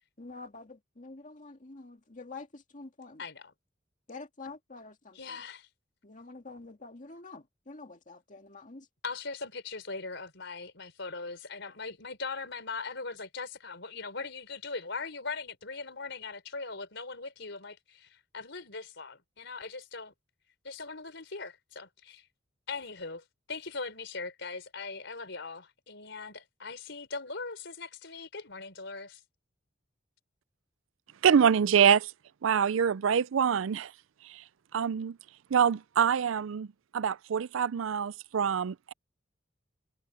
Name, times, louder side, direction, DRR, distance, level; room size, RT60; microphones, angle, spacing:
voice 1, 0.2-3.2 4.1-5.4 6.0-8.9, left 3 dB, 40° left, 2.0 m, -47 dB
voice 2, 3.2-3.5 5.1-5.7 9.0-20.1 20.6-22.3 22.7-29.2, left 4 dB, 65° left, 4.9 m, -40 dB
voice 3, 31.2-32.1 32.4-33.9 34.3-34.4 34.7-35.2 35.5-36.7 36.9-38.8, right 7 dB, 85° right, 0.4 m, -25 dB
head